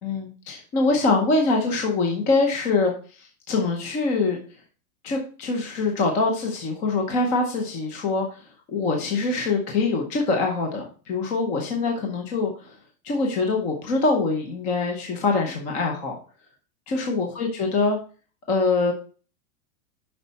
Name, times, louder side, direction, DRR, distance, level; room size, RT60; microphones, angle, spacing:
voice 1, 0.0-2.9 3.2-4.4 5.0-12.7 13.0-16.2 16.9-18.0 18.5-18.9, left 3 dB, 15° left, 2 dB, 0.7 m, -24 dB
7.8 x 5.6 x 4.1 m, 0.38 s
supercardioid pair, 175°, 46 cm